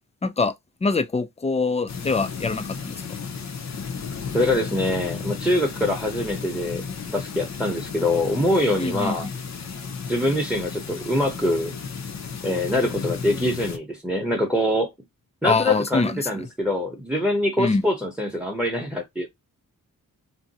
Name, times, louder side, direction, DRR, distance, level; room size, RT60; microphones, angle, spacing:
voice 1, 0.2-0.5 0.8-3.0 8.8-9.2 15.4-16.5 17.6-17.8, left 3 dB, 20° left, 0.4 m, -24 dB
sound 1, 1.9-13.8, left 5 dB, 50° left, 0.7 m, -34 dB
voice 2, 4.3-6.8 7.1-9.3 10.1-11.7 12.4-14.9 15.4-19.3, left 1 dB, 5° right, 0.8 m, -24 dB
2.7 x 2.1 x 4.0 m
wide cardioid pair, 105°, 35 cm